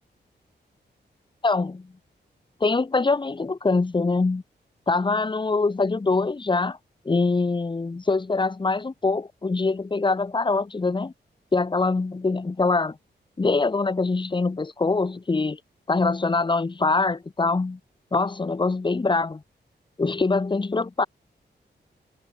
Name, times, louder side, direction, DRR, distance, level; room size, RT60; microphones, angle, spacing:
voice 1, 1.4-1.9 2.6-4.4 4.9-6.8 7.1-11.1 11.5-13.0 13.4-15.6 15.9-17.8 18.1-19.4 20.0-21.1, left 3 dB, 25° left, 3.8 m, -23 dB
wide cardioid pair, 170°, 18 cm